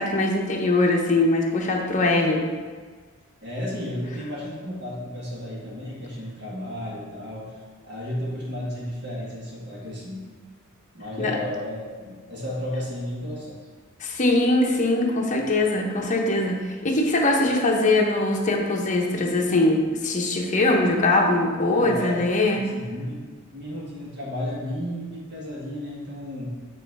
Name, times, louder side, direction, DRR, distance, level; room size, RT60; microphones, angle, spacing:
voice 1, 0.0-2.5 11.2-11.4 14.0-22.7, left 2 dB, 35° left, 0 dB, 0.7 m, -22 dB
voice 2, 3.4-7.5 7.8-10.3 10.9-13.7 21.7-23.2 23.5-26.6, left 1 dB, 55° right, -6 dB, 1.6 m, -33 dB
7.6 x 3.0 x 4.7 m, 1.5 s
head